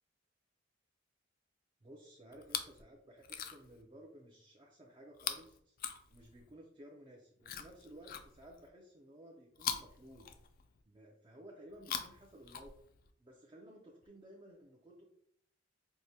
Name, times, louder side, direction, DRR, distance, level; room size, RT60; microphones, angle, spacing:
voice 1, 1.8-5.8 6.1-10.3 10.9-12.7 13.2-15.1, right 1 dB, 25° right, -1 dB, 0.4 m, -56 dB
Chewing mastication, 2.3-2.8 3.2-3.8 5.1-6.5 7.4-8.7 9.5-10.8 11.7-13.1 14.0-14.1, left 8 dB, 50° left, 0.3 m, -43 dB
4.6 x 2.1 x 2.7 m, 0.68 s
head